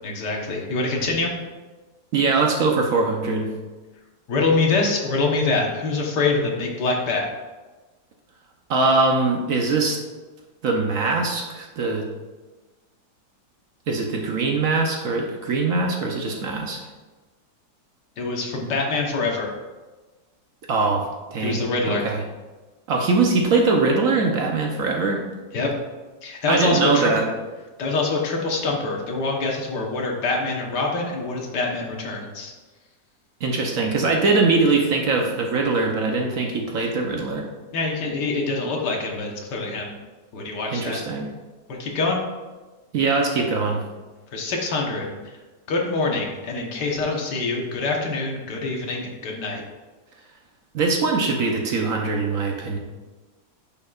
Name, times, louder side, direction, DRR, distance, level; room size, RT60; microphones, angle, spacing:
voice 1, 0.0-1.3 4.3-7.3 18.2-19.5 21.4-22.1 25.5-25.7 26.2-27.1 27.8-32.5 37.7-39.9 40.3-41.0 41.7-42.2 44.3-45.2 45.7-49.6, left 3 dB, 75° left, 0 dB, 1.8 m, -25 dB
voice 2, 2.1-3.5 8.7-10.0 10.6-12.0 13.9-16.8 20.7-21.6 21.9-22.2 22.9-25.2 26.5-27.2 33.4-37.5 40.7-41.3 42.9-43.8 50.7-52.8, right 3 dB, 60° right, 1 dB, 1.0 m, -22 dB
10.5 x 5.6 x 2.4 m, 1.2 s
omnidirectional pair, 1.9 m